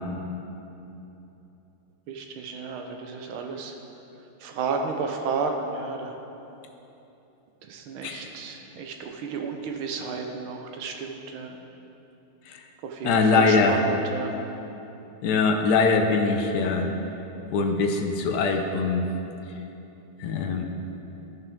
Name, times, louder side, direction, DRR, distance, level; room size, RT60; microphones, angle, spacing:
voice 1, 2.1-3.7 4.4-6.2 7.7-11.6 12.8-14.4, right 4 dB, 85° right, 3 dB, 1.6 m, -32 dB
voice 2, 13.0-13.8 15.2-16.9 17.5-19.1 20.2-20.6, left 4 dB, 70° left, 4 dB, 1.0 m, -22 dB
12.5 x 5.6 x 3.5 m, 3.0 s
omnidirectional pair, 2.2 m